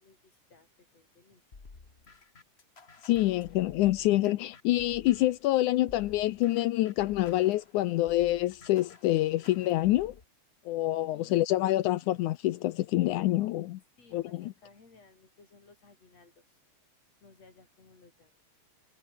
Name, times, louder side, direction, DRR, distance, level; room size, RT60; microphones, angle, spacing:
voice 1, 0.0-1.4 11.1-11.5 14.0-16.6 17.2-18.3, left 4 dB, 50° left, 6.3 m, -59 dB
sound 1, 1.5-5.4 5.9-10.2, left 4 dB, 25° left, 1.7 m, -53 dB
voice 2, 3.0-10.1 10.7-13.8 14.1-14.5, left 16 dB, 75° left, 2.1 m, -26 dB
omnidirectional pair, 3.7 m